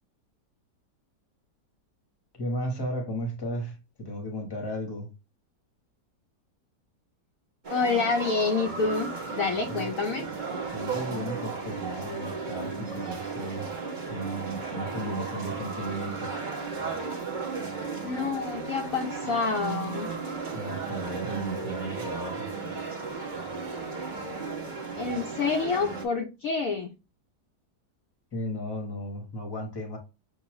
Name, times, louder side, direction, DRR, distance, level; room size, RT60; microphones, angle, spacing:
voice 1, 2.3-5.1 9.7-9.9 10.7-13.7 14.1-16.4 20.5-22.5 28.3-30.0, equal, 15° left, 0.9 m, -35 dB
sound 1, 7.6-26.1, right 4 dB, 30° right, 1.0 m, -35 dB
voice 2, 7.7-10.3 18.0-20.1 25.0-26.9, left 4 dB, 65° left, 0.9 m, -28 dB
6.3 x 2.5 x 3.0 m
omnidirectional pair, 1.8 m